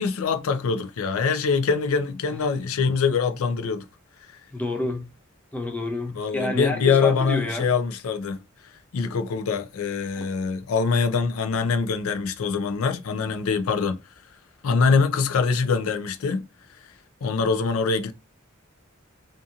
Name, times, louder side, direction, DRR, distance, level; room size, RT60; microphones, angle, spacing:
voice 1, 0.0-3.9 6.1-8.4 8.9-14.0 14.6-16.5 17.2-18.1, left 5 dB, 80° left, 0.4 m, -24 dB
voice 2, 4.5-5.1 5.5-7.7 10.2-10.3, left 1 dB, 5° left, 0.5 m, -29 dB
2.7 x 2.5 x 2.3 m
head